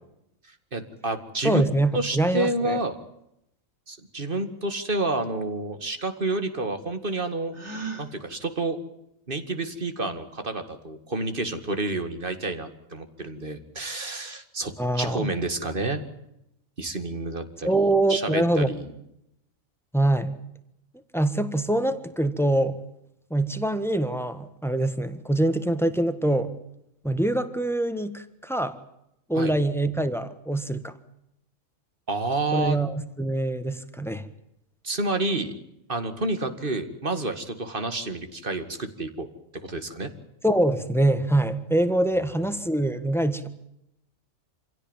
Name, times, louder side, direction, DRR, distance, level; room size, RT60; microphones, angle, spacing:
voice 1, 0.7-1.6 1.9-3.0 3.9-7.5 8.0-8.8 9.3-14.7 15.0-16.0 16.8-18.9 29.4-29.6 32.1-32.8 34.8-35.5 35.9-39.3 39.6-40.1, right 2 dB, 40° right, 9 dB, 2.3 m, -29 dB
voice 2, 1.4-2.8 14.8-15.3 17.6-18.7 19.9-20.3 21.1-22.8 23.3-26.5 27.0-28.8 29.3-30.9 32.5-34.2 40.4-43.5, right 1 dB, ahead, 11 dB, 1.5 m, -24 dB
Gasp, 7.5-8.1, right 4 dB, 55° right, 3.9 m, -35 dB
26.5 x 16.5 x 9.0 m, 0.82 s
omnidirectional pair, 1.4 m